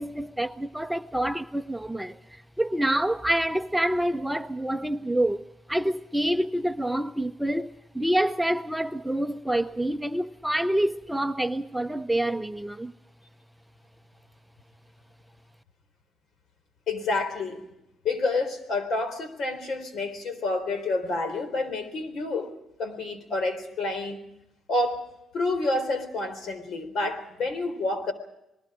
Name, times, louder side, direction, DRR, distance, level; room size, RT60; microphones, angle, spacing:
voice 1, 0.0-5.4 5.7-12.9, right 1 dB, 5° right, 0.7 m, -27 dB
voice 2, 16.9-17.6 18.0-22.5 22.8-24.2 24.7-28.1, left 2 dB, 65° left, 4.0 m, -29 dB
28.0 x 20.0 x 5.0 m
cardioid pair, 90°, 0 cm